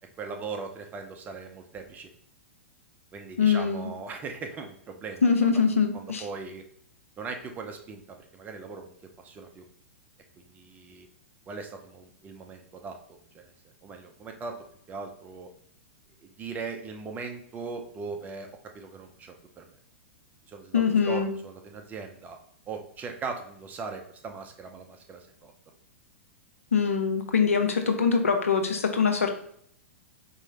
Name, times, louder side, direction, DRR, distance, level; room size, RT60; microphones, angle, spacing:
voice 1, 0.2-2.1 3.1-5.2 5.9-6.7 7.2-8.9 9.2-9.6 10.4-11.1 11.5-13.5 13.8-14.6 14.9-15.5 16.2-18.5 18.7-19.8 20.5-22.4 22.7-25.5, right 4 dB, 20° right, 4 dB, 0.7 m, -39 dB
voice 2, 3.4-3.9 5.2-6.2 20.7-21.3 26.7-29.3, left 6 dB, 80° left, 5 dB, 0.7 m, -23 dB
4.7 x 3.0 x 2.8 m, 0.65 s
hypercardioid pair, 110°, 7 cm